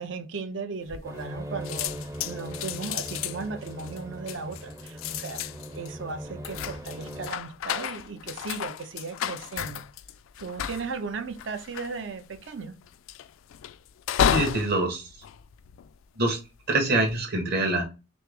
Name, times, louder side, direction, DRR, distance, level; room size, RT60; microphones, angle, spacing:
voice 1, 0.0-5.4 5.7-9.8 10.4-12.8, right 4 dB, 70° right, 0.6 m, -36 dB
sound 1, 0.9-1.4 1.6-16.2 16.8-17.2, left 9 dB, 85° left, 0.3 m, -33 dB
sound 2, 1.0-7.3, equal, 15° right, 0.5 m, -39 dB
voice 2, 14.3-15.1 16.2-16.4 16.7-17.8, right 2 dB, 55° right, 1.4 m, -25 dB
6.0 x 2.0 x 3.5 m
head